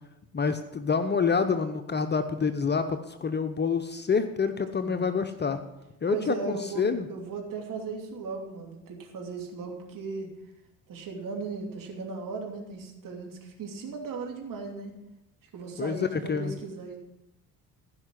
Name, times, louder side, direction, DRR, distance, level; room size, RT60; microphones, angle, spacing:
voice 1, 0.3-5.6 6.0-7.1 15.8-16.5, left 5 dB, 25° left, 9 dB, 0.9 m, -27 dB
voice 2, 4.8-5.6 6.1-10.3 10.9-14.9 15.5-17.0, right 4 dB, 45° right, 1 dB, 3.0 m, -37 dB
15.5 x 5.8 x 7.6 m, 0.91 s
figure-of-eight pair, 55°, 44 cm